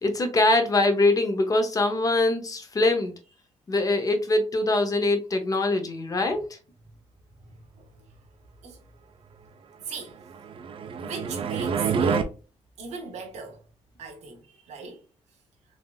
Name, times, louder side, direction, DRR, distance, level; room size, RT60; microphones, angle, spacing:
voice 1, 0.0-3.1 3.7-6.6, left 2 dB, 30° left, 0.7 m, -23 dB
voice 2, 7.4-8.1 8.6-8.9 9.8-10.2 11.0-12.4 12.8-13.6 14.0-15.0, right 4 dB, 80° right, 0.9 m, -38 dB
sound 1, 10.3-12.2, right 6 dB, 55° right, 0.4 m, -27 dB
3.5 x 2.5 x 2.2 m
cardioid pair, 100°, 11 cm